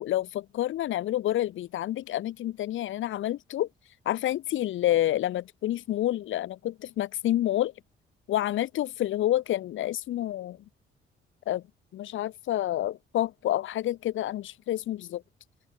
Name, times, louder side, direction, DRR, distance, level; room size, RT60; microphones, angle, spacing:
voice 1, 0.0-3.7 4.0-7.7 8.3-10.6 11.5-11.6 11.9-15.2, left 13 dB, 80° left, 3.2 m, -28 dB
open air
cardioid pair, 90°, 20 cm